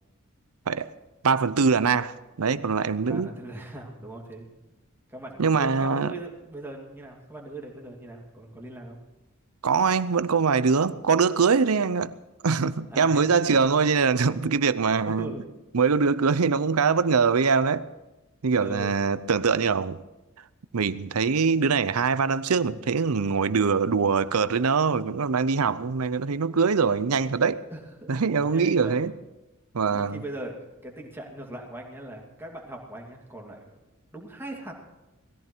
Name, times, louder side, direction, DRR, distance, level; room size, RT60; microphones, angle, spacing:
voice 1, 1.2-3.3 5.4-6.1 9.6-12.1 12.4-15.3 15.7-17.9 18.4-20.0 20.7-27.6 28.1-29.1 29.7-30.2, right 5 dB, 85° right, 0.7 m, -23 dB
voice 2, 3.1-4.5 5.1-9.0 12.9-13.7 15.0-15.4 18.6-19.0 27.7-29.0 29.9-30.5 30.8-33.9 34.1-34.7, right 1 dB, 10° right, 2.6 m, -40 dB
19.5 x 14.0 x 4.6 m
head